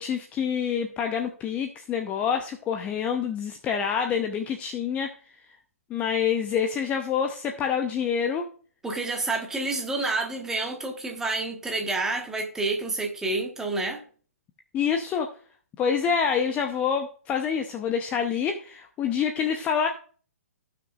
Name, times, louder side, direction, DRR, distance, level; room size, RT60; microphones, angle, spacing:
voice 1, 0.0-5.1 5.9-8.5 14.7-15.3 15.8-19.9, left 7 dB, 15° left, 0.7 m, -27 dB
voice 2, 8.8-14.0, right 3 dB, 5° right, 1.4 m, -29 dB
17.0 x 5.9 x 2.5 m
figure-of-eight pair, 125°, 8 cm